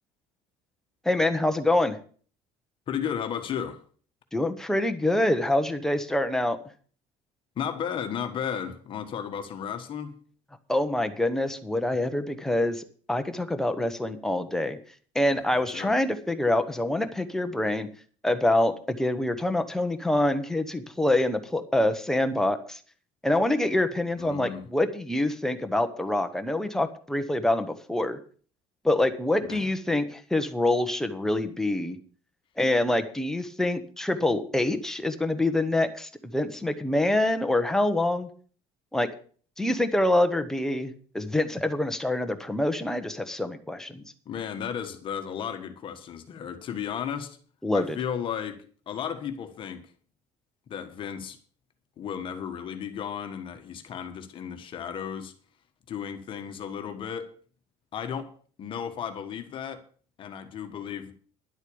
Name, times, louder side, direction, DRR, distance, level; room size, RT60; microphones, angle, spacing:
voice 1, 1.0-2.0 4.3-6.6 10.7-14.8 15.1-17.9 18.2-22.8 23.2-28.2 28.8-32.0 32.6-38.3 38.9-39.1 39.6-44.0 47.6-48.0, left 1 dB, 5° left, 7 dB, 0.9 m, -26 dB
voice 2, 2.9-3.8 7.5-10.1 15.3-15.9 24.2-24.7 29.5-29.7 44.2-47.4 47.7-49.9 50.7-51.4 52.0-55.3 55.9-57.3 57.9-58.3 58.6-59.8 60.2-61.1, left 8 dB, 35° left, 7 dB, 1.4 m, -34 dB
11.0 x 8.1 x 6.9 m, 0.44 s
cardioid pair, 165°, 14 cm